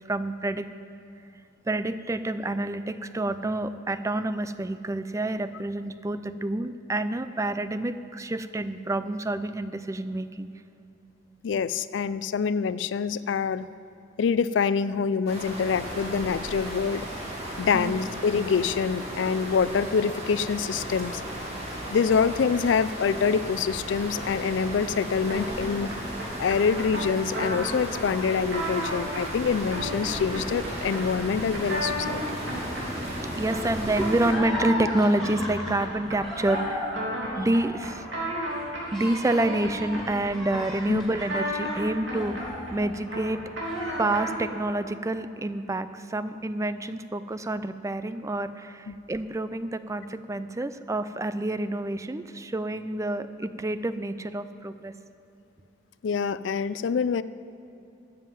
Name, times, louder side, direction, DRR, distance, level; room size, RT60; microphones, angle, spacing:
voice 1, 0.1-0.7 1.7-10.5 17.7-17.9 33.3-36.9 37.4-38.0 38.9-42.4 42.7-43.4 44.0-54.9, right 2 dB, 15° right, 12 dB, 0.4 m, -28 dB
voice 2, 11.4-13.7 14.2-17.1 17.6-21.2 21.9-25.9 26.4-32.4 40.9-41.1 48.9-49.0 56.0-57.2, left 6 dB, 75° left, 15 dB, 0.4 m, -26 dB
sound 1, 15.3-34.3, equal, 35° right, 2.4 m, -35 dB
sound 2, 25.3-44.5, equal, 80° right, 3.2 m, -34 dB
sound 3, 34.2-43.3 43.6-44.7, left 1 dB, ahead, 3.2 m, -37 dB
13.0 x 7.5 x 7.5 m, 2.8 s
head